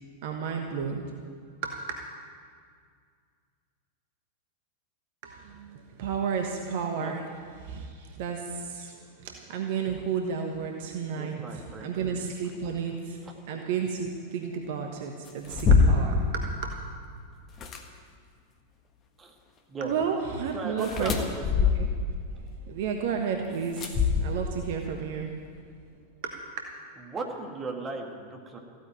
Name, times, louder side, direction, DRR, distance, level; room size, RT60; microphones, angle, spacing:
voice 1, 0.2-1.1 1.6-2.0 5.2-7.2 7.6-16.7 19.8-21.2 21.7-21.9 22.4-25.3 26.2-26.4, right 6 dB, 50° right, 3 dB, 1.2 m, -32 dB
voice 2, 11.1-12.0 13.2-13.3 19.2-19.3 19.7-19.9 20.5-21.7 27.0-28.6, right 3 dB, 20° right, 2 dB, 1.9 m, -37 dB
sound 1, 15.3-16.2 17.5-17.8 20.8-22.1 23.8-24.7, left 5 dB, 30° left, 1.5 m, -23 dB
15.0 x 9.1 x 9.0 m, 2.1 s
figure-of-eight pair, 90°, 0 cm